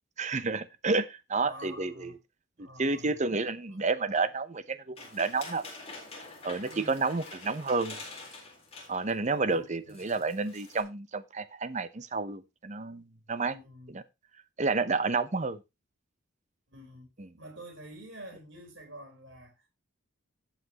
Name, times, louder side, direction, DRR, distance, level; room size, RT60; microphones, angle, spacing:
voice 1, 0.2-2.1 2.6-5.6 6.4-8.0 8.9-13.5 14.6-15.6 17.2-17.3, right 3 dB, 35° right, 0.7 m, -30 dB
voice 2, 1.4-2.2 2.6-3.2 6.6-7.1 9.3-10.3 13.4-14.0 16.7-17.1 17.4-19.7, equal, 60° right, 3.6 m, -48 dB
sound 1, 5.0-9.2 9.5-9.6 9.9-10.8, left 3 dB, 30° left, 3.8 m, -46 dB
17.0 x 5.9 x 2.9 m
head